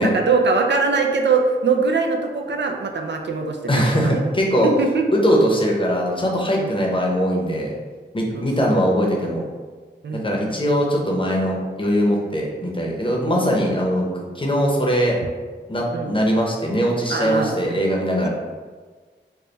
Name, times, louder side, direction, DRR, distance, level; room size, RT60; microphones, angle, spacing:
voice 1, 0.0-4.2 4.6-5.1 6.6-6.8 8.3-8.8 10.0-10.4 15.9-16.1 17.1-17.6 18.2-18.3, right 4 dB, 70° right, 3 dB, 0.4 m, -22 dB
voice 2, 3.7-4.7 5.2-7.7 8.1-9.4 10.1-15.2 15.7-18.3, equal, 25° left, -2 dB, 0.7 m, -21 dB
3.3 x 2.2 x 3.9 m, 1.5 s
wide cardioid pair, 70°, 19 cm